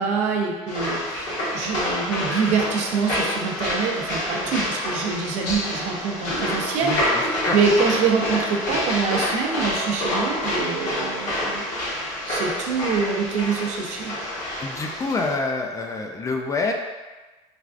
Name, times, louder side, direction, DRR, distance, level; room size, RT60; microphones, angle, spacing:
voice 1, 0.0-11.7 12.3-14.1, right 5 dB, 70° right, 1 dB, 0.5 m, -25 dB
sound 1, 0.7-15.3, left 1 dB, 70° left, 1.3 m, -27 dB
voice 2, 6.8-7.6 14.6-16.7, left 3 dB, 25° left, 2 dB, 0.3 m, -27 dB
3.2 x 2.3 x 2.5 m, 1.2 s
cardioid pair, 110°, 13 cm